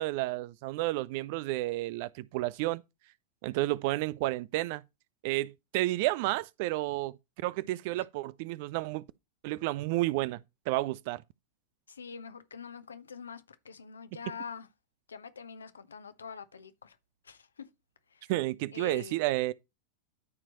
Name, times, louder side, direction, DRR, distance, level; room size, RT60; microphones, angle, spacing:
voice 1, 0.0-2.8 3.4-4.8 5.2-9.0 9.4-11.2 18.3-19.5, right 18 dB, 50° right, 0.4 m, -31 dB
voice 2, 11.9-14.7 15.1-17.0 17.2-17.7 18.1-18.3 18.7-19.2, left 6 dB, 70° left, 1.0 m, -45 dB
13.0 x 4.5 x 3.0 m
figure-of-eight pair, 90°, 0 cm